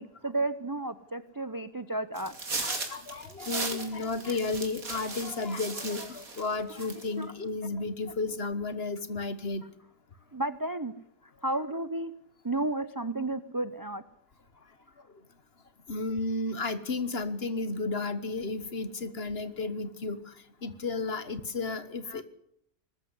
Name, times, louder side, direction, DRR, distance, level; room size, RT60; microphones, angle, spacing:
voice 1, 0.0-2.4 7.1-7.3 10.3-10.9 11.4-12.1 12.4-14.0, right 2 dB, 25° right, 14 dB, 0.4 m, -32 dB
sound 1, 2.2-6.5 6.8-7.2, right 3 dB, 60° right, 3.2 m, -37 dB
voice 2, 2.6-9.6 15.9-20.3 20.6-22.2, left 3 dB, 40° left, 13 dB, 1.5 m, -33 dB
20.0 x 14.0 x 9.7 m, 0.73 s
omnidirectional pair, 1.7 m